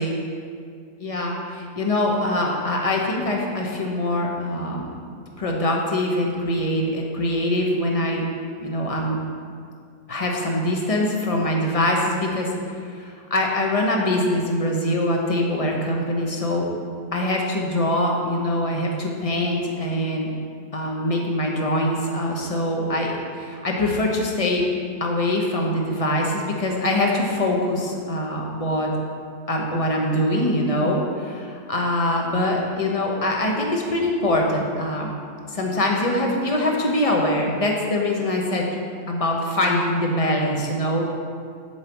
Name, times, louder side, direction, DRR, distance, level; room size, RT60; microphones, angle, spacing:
voice 1, 1.0-4.9 5.4-8.2 8.6-9.2 10.1-16.7 17.1-20.3 20.7-24.7 25.0-28.9 29.5-35.1 35.5-38.7 39.1-41.1, left 1 dB, 25° left, 0 dB, 0.9 m, -23 dB
7.4 x 4.9 x 7.0 m, 2.2 s
omnidirectional pair, 1.7 m